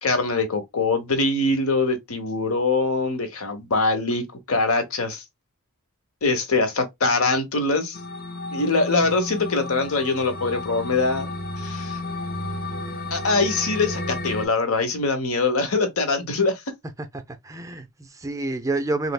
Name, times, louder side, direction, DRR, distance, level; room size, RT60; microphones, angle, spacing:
voice 1, 0.0-5.2 6.2-8.0 8.5-11.3 11.6-12.0 13.1-16.6, left 3 dB, 75° left, 1.1 m, -23 dB
sound 1, 7.9-14.5, left 2 dB, 40° left, 0.7 m, -32 dB
voice 2, 17.1-19.1, right 2 dB, 15° right, 0.4 m, -28 dB
3.3 x 3.2 x 2.2 m
head